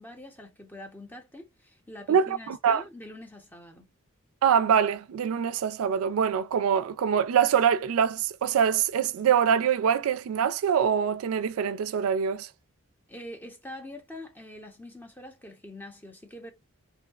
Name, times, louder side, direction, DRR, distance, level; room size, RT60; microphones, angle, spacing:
voice 1, 0.0-3.9 13.1-16.5, left 1 dB, 10° left, 0.7 m, -44 dB
voice 2, 2.1-2.8 4.4-12.5, right 7 dB, 70° right, 0.3 m, -24 dB
2.7 x 2.0 x 2.3 m
head